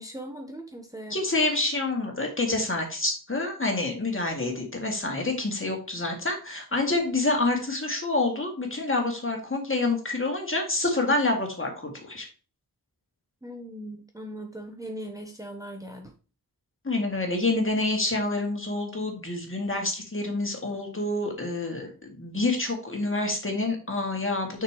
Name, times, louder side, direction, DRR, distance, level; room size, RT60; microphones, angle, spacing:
voice 1, 0.0-1.2 13.4-16.1, right 1 dB, 10° right, 2 dB, 1.0 m, -39 dB
voice 2, 1.1-12.3 16.8-24.6, left 2 dB, 35° left, 1 dB, 2.3 m, -27 dB
6.8 x 5.9 x 3.1 m, 0.36 s
wide cardioid pair, 70°, 38 cm